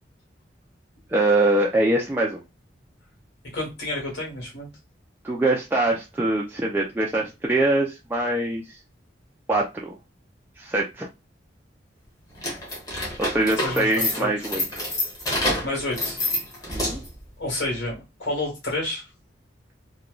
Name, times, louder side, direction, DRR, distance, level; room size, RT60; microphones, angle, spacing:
voice 1, 1.1-2.4 5.2-8.6 9.5-9.9 10.6-11.1 13.2-14.8 16.7-17.0, right 2 dB, 10° right, -2 dB, 0.3 m, -23 dB
voice 2, 3.5-4.7 13.6-13.9 14.1-14.3 15.6-16.2 17.4-19.0, left 2 dB, 70° left, -2 dB, 1.7 m, -29 dB
sound 1, 12.3-17.2, left 1 dB, 20° left, 1.1 m, -27 dB
3.0 x 2.2 x 2.3 m, 0.25 s
head